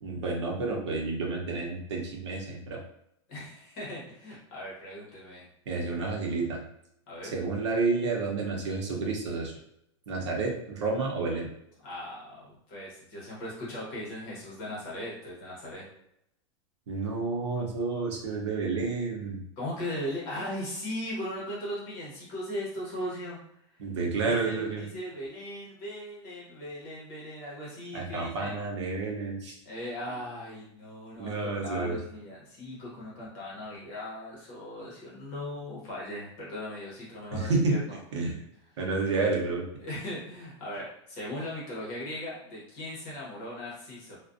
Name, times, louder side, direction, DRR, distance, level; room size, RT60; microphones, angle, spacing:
voice 1, 0.0-2.8 5.7-6.6 7.3-9.5 10.1-11.5 16.9-19.4 23.8-24.9 27.9-29.6 31.1-32.0 37.3-37.8 38.1-38.4 38.8-39.6, right 3 dB, 70° right, -1 dB, 0.8 m, -30 dB
voice 2, 3.3-5.5 7.1-7.4 11.8-15.8 19.6-23.4 24.3-28.6 29.6-38.0 39.8-44.2, left 1 dB, 30° left, -5 dB, 1.0 m, -38 dB
2.4 x 2.2 x 2.5 m, 0.76 s
supercardioid pair, 175°, 15 cm